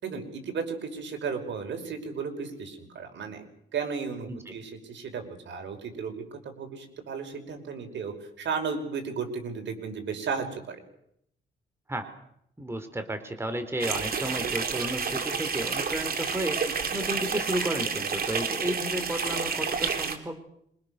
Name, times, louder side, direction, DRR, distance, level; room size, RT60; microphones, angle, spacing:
voice 1, 0.0-3.4 3.7-10.8, right 5 dB, 65° right, 4 dB, 5.5 m, -34 dB
voice 2, 12.6-16.6 16.9-20.4, right 1 dB, 10° right, 7 dB, 3.9 m, -32 dB
sound 1, 13.8-20.2, right 5 dB, 50° right, 3.5 m, -30 dB
26.5 x 24.5 x 6.7 m, 0.74 s
cardioid pair, 90°, 20 cm